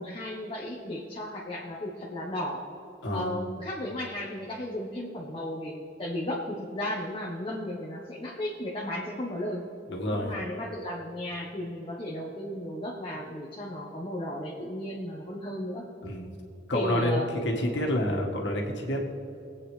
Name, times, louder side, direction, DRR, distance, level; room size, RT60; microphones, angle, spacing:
voice 1, 0.0-2.6 3.1-9.6 10.1-15.8 16.7-17.3, left 1 dB, 30° left, -3 dB, 1.1 m, -34 dB
voice 2, 3.0-3.3 9.9-10.3 16.0-16.4 16.7-19.0, left 1 dB, 85° left, 0 dB, 1.9 m, -28 dB
21.0 x 8.4 x 3.3 m, 2.9 s
head